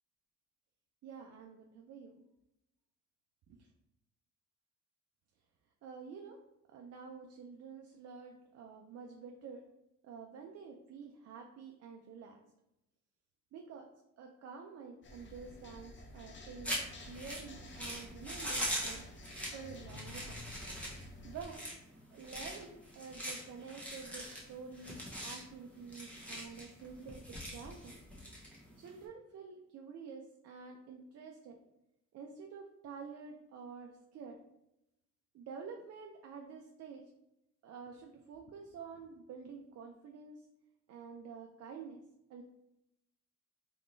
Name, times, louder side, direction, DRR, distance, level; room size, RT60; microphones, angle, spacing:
voice 1, 1.0-2.2 5.8-6.4 6.7-9.6 10.0-12.4 13.5-13.9 14.2-16.8 17.1-19.1 19.5-20.4 21.2-21.6 22.1-28.0 28.8-31.6 32.1-34.4 35.3-37.0 37.6-40.5 40.9-42.0 42.3-42.4, right 5 dB, 55° right, 2 dB, 0.5 m, -49 dB
sound 1, 15.0-21.4, left 2 dB, 40° left, 0.6 m, -51 dB
sound 2, 16.6-29.0, equal, 5° left, 1.0 m, -42 dB
3.5 x 3.1 x 2.6 m, 0.85 s
cardioid pair, 90°, 30 cm